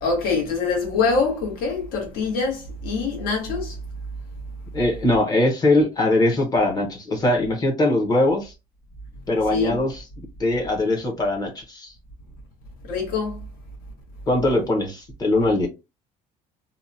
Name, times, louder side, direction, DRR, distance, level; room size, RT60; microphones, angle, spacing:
voice 1, 0.0-3.8 9.5-9.8 12.8-13.4, left 4 dB, 65° left, 1.1 m, -24 dB
voice 2, 4.7-8.5 9.3-9.9 10.4-11.9 14.3-15.7, left 2 dB, 25° left, 0.8 m, -21 dB
2.7 x 2.2 x 2.6 m
cardioid pair, 175°, 16 cm